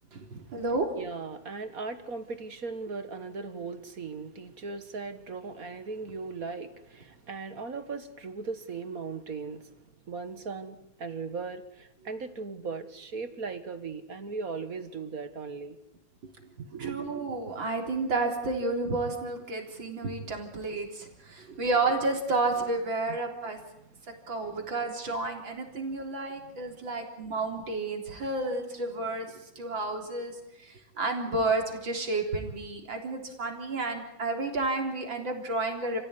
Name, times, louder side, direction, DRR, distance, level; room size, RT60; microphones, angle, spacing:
voice 1, 0.1-0.9 16.8-23.6 24.3-30.4 30.6-36.0, right 3 dB, 75° right, 3 dB, 4.5 m, -31 dB
voice 2, 1.0-9.7 10.1-15.8 16.6-17.3 20.6-20.7 21.3-21.6 23.9-24.2 25.9-26.0 26.4-26.8, right 4 dB, 45° right, 10 dB, 1.9 m, -38 dB
29.5 x 16.5 x 9.8 m, 0.84 s
omnidirectional pair, 2.1 m